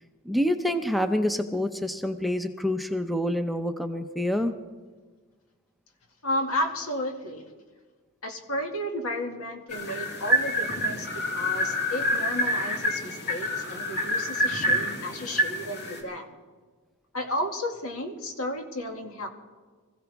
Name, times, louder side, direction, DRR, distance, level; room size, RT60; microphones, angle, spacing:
voice 1, 0.2-4.5, left 1 dB, ahead, 6 dB, 0.6 m, -27 dB
voice 2, 6.2-7.5 8.2-11.1 11.3-16.3 17.1-19.3, left 1 dB, 75° left, 3 dB, 2.2 m, -32 dB
sound 1, 9.7-16.0, equal, 55° left, 3.2 m, -27 dB
24.5 x 15.5 x 3.5 m, 1.4 s
head